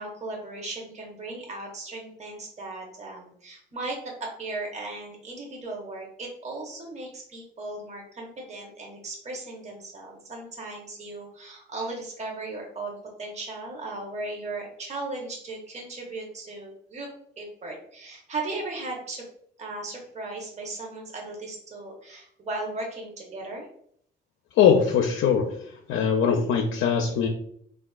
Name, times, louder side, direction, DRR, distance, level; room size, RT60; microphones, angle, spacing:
voice 1, 0.0-17.1 17.4-19.2 19.6-23.7, right 2 dB, 35° right, 0 dB, 0.8 m, -37 dB
voice 2, 24.6-25.5 25.9-27.3, left 7 dB, 80° left, 2 dB, 0.4 m, -21 dB
3.4 x 2.3 x 2.3 m, 0.66 s
cardioid pair, 90°, 20 cm